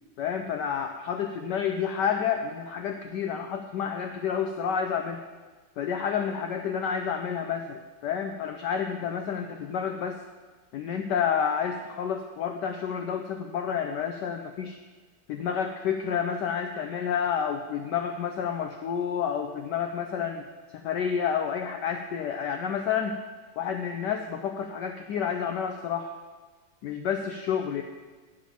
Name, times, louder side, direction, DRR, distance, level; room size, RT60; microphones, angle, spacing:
voice 1, 0.2-5.2 5.8-10.2 10.7-14.8 15.3-20.4 20.8-23.2 23.6-26.1 26.8-27.8, left 7 dB, 75° left, 5 dB, 1.0 m, -29 dB
10.0 x 5.1 x 7.1 m, 1.3 s
omnidirectional pair, 2.3 m